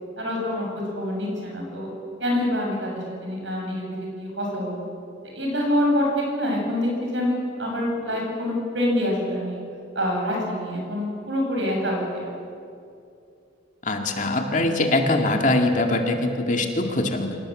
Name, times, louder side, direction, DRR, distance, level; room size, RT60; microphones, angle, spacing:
voice 1, 0.2-0.7 0.9-1.9 2.2-4.8 5.3-9.6 9.9-12.3, left 1 dB, 75° right, -1 dB, 7.9 m, -26 dB
voice 2, 13.8-17.4, left 2 dB, 40° left, 3 dB, 2.1 m, -22 dB
26.5 x 18.0 x 7.7 m, 2.5 s
head